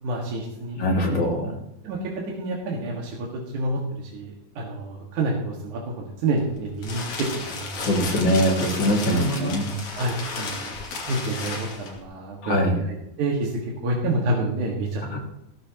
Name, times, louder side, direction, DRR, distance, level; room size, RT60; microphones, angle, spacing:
voice 1, 0.0-1.3 1.8-2.0 2.4-7.9 9.1-9.5 9.9-10.7 11.1-12.8 13.2-15.2, right 2 dB, 75° right, -2 dB, 3.3 m, -28 dB
voice 2, 0.8-1.5 7.8-9.7 12.4-12.8 15.1-15.2, equal, 40° left, 0 dB, 3.0 m, -22 dB
sound 1, 6.3-12.0, left 3 dB, 70° left, 3.8 m, -34 dB
16.5 x 14.5 x 3.0 m, 0.83 s
omnidirectional pair, 3.5 m